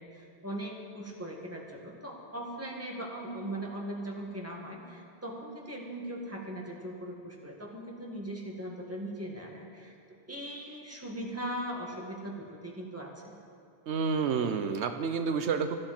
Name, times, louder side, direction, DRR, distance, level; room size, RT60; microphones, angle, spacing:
voice 1, 0.0-10.0 10.3-13.3, right 1 dB, 15° right, -2 dB, 2.1 m, -39 dB
voice 2, 13.9-15.8, right 5 dB, 85° right, 7 dB, 1.0 m, -29 dB
18.0 x 13.5 x 4.4 m, 2.4 s
omnidirectional pair, 1.1 m